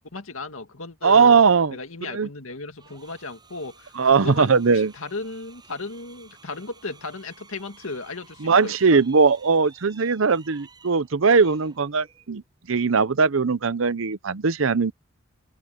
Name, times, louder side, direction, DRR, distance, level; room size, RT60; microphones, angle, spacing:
voice 1, 0.1-1.4 1.7-9.0, left 3 dB, 85° left, 2.1 m, -35 dB
voice 2, 1.0-1.8 2.1-2.3 4.0-4.9 8.4-12.4 12.7-14.9, right 5 dB, 75° right, 0.7 m, -19 dB
sound 1, 2.8-12.3, right 4 dB, 20° right, 7.8 m, -53 dB
open air
head